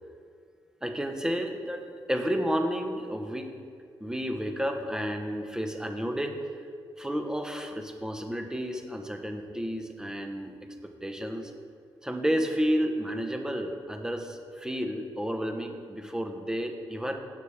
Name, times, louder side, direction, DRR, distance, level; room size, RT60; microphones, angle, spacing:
voice 1, 0.8-1.8 2.1-3.5 4.0-6.7 7.0-10.5 10.8-11.5 12.0-17.2, equal, 5° right, 4 dB, 1.3 m, -31 dB
16.5 x 7.4 x 3.6 m, 2.1 s
cardioid pair, 70°, 10 cm